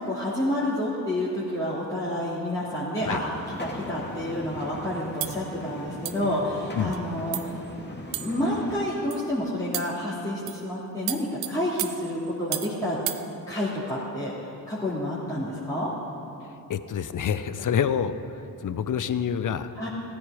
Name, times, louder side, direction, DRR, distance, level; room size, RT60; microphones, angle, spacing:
voice 1, 0.0-7.6 8.2-13.0 13.5-14.3 14.7-15.9 19.7-19.9, left 1 dB, 10° left, -8 dB, 2.8 m, -29 dB
sound 1, 3.0-8.9, left 1 dB, 25° left, 2.0 m, -40 dB
sound 2, 5.2-5.4 6.0-6.3 6.9-7.0 7.3-7.6 8.1-8.5 9.1-9.3 9.7-10.0 10.5-10.7 11.1-12.8 13.1-13.2, right 14 dB, 75° right, 0.7 m, -33 dB
voice 2, 16.7-19.7, left 8 dB, 45° left, 12 dB, 0.7 m, -27 dB
15.5 x 9.4 x 4.9 m, 2.8 s
hypercardioid pair, 45°, 45 cm